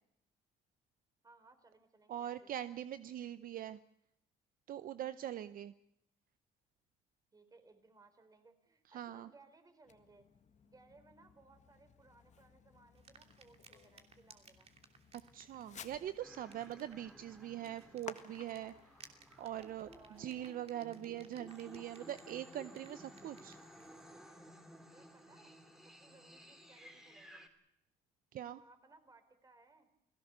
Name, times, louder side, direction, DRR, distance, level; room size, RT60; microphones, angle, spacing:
voice 1, 1.2-2.5 7.3-10.3 10.6-14.7 19.9-20.6 24.9-25.5 25.8-27.5 28.5-29.9, right 3 dB, 20° right, 9 dB, 3.9 m, -64 dB
voice 2, 2.1-3.8 4.7-5.7 8.9-9.3 15.3-18.7 19.4-23.6 28.3-28.6, right 11 dB, 55° right, 13 dB, 0.7 m, -43 dB
Fireworks, 9.8-20.5, left 7 dB, 45° left, 1.8 m, -57 dB
sound 1, 12.9-24.0, right 5 dB, 35° right, 2.9 m, -63 dB
sound 2, 16.2-27.5, equal, 5° right, 3.2 m, -57 dB
29.0 x 17.5 x 6.8 m, 0.82 s
cardioid pair, 110°, 17 cm